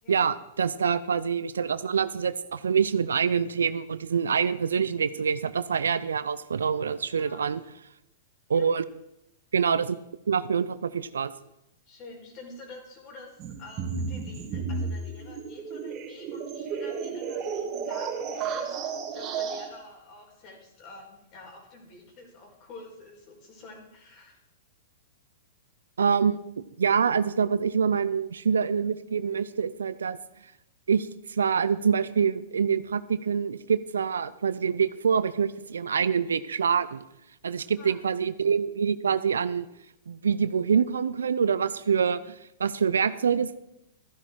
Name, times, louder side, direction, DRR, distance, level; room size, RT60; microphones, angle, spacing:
voice 1, 0.1-7.6 8.5-8.8 9.5-10.0 10.3-11.3 26.0-26.4 26.8-30.2 30.9-37.0 37.4-39.7 40.1-43.6, right 6 dB, 85° right, 15 dB, 0.5 m, -25 dB
voice 2, 11.8-18.8 19.1-24.4 37.8-38.0, left 2 dB, 40° left, 0 dB, 4.7 m, -48 dB
sound 1, 13.4-19.7, right 5 dB, 35° right, 2.0 m, -33 dB
14.0 x 11.0 x 4.6 m, 0.85 s
hypercardioid pair, 120°, 0 cm